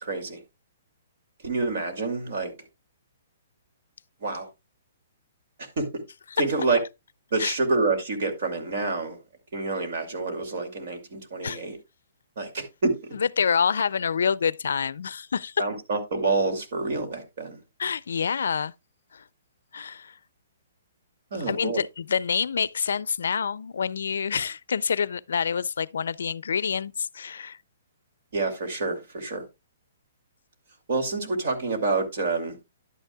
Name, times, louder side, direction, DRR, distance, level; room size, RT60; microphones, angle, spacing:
voice 1, 0.0-0.4 1.4-2.5 4.2-4.5 5.6-6.0 6.4-6.8 7.3-9.2 9.5-11.8 12.4-13.2 15.6-17.6 21.3-21.8 28.3-29.5 30.9-32.6, right 3 dB, 45° right, 2.4 m, -27 dB
voice 2, 13.2-15.6 17.8-18.7 19.1-19.2 19.7-20.2 21.5-27.6, left 6 dB, 75° left, 0.4 m, -27 dB
11.0 x 9.2 x 2.3 m
hypercardioid pair, 180°, 0 cm